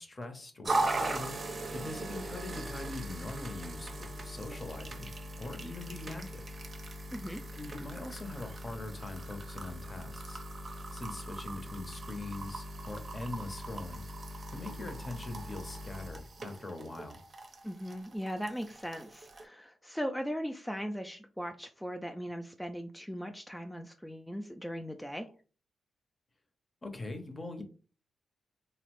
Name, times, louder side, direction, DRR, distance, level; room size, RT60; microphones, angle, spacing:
voice 1, 0.0-1.3 1.7-5.1 5.4-6.4 7.5-10.4 10.9-14.0 14.5-17.2 26.8-27.6, left 2 dB, 35° left, 5 dB, 0.7 m, -42 dB
sound 1, 0.6-19.4, right 2 dB, 50° right, 0.5 m, -39 dB
voice 2, 7.1-7.4 17.6-25.3, equal, 5° left, 4 dB, 0.3 m, -38 dB
2.8 x 2.0 x 3.0 m, 0.38 s
supercardioid pair, 50°, 0 cm